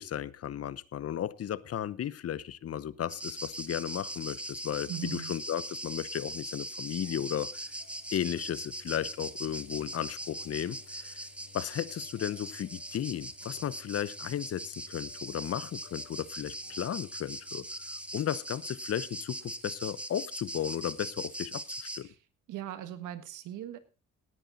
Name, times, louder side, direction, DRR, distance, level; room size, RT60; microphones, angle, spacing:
voice 1, 0.0-7.5 8.1-11.2 11.5-17.7 18.1-22.1, left 10 dB, 50° left, 0.8 m, -35 dB
sound 1, 2.9-18.2, left 7 dB, 70° left, 3.9 m, -62 dB
sound 2, 3.1-22.0, right 1 dB, 5° right, 1.1 m, -41 dB
voice 2, 4.9-5.3 22.0-23.8, right 10 dB, 85° right, 1.7 m, -40 dB
18.0 x 8.9 x 4.0 m
cardioid pair, 90°, 30 cm